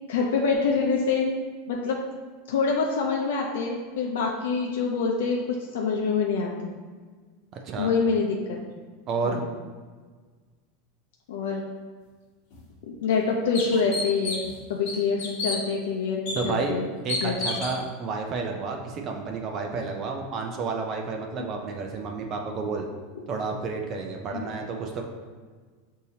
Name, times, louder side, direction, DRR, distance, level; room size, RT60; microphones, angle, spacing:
voice 1, 0.1-1.3 1.7-2.0 2.5-6.7 7.8-8.6 9.2-9.5 11.3-11.6 12.9-14.4 14.7-16.9 17.2-17.5 24.3-24.4, left 5 dB, 85° left, 0 dB, 0.5 m, -26 dB
voice 2, 9.1-9.4 16.3-16.7 17.0-22.9 23.3-25.1, right 4 dB, 30° right, 2 dB, 0.4 m, -30 dB
sound 1, 12.5-12.6 13.1-13.2 13.5-14.5 14.9-15.6 16.3-16.4 17.1-17.8, left 3 dB, 50° left, 1.2 m, -30 dB
6.4 x 2.7 x 2.8 m, 1.5 s
supercardioid pair, 165°, 0 cm